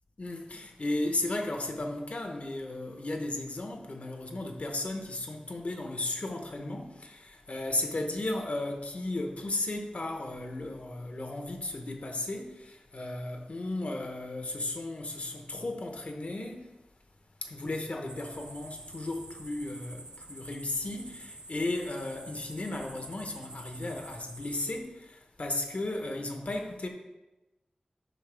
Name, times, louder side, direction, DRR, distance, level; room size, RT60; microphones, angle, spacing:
voice 1, 0.2-16.7 17.4-26.9, left 2 dB, 55° left, 1.0 m, -35 dB
sound 1, 18.1-24.8, right 2 dB, 30° right, 0.5 m, -48 dB
8.9 x 5.6 x 3.4 m
wide cardioid pair, 85°, 3 cm